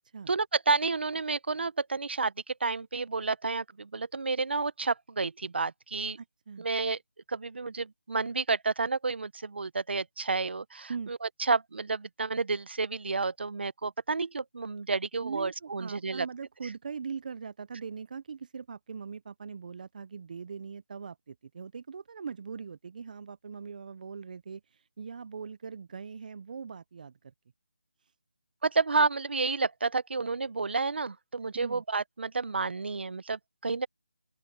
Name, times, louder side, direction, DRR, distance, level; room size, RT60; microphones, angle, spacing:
voice 1, 0.3-6.2 6.6-7.0 7.3-16.3 28.6-33.9, right 4 dB, 65° right, 1.2 m, -30 dB
voice 2, 6.2-6.7 10.9-11.1 15.2-27.3 31.5-31.8, right 6 dB, 45° right, 0.7 m, -41 dB
open air
figure-of-eight pair, 160°, 6 cm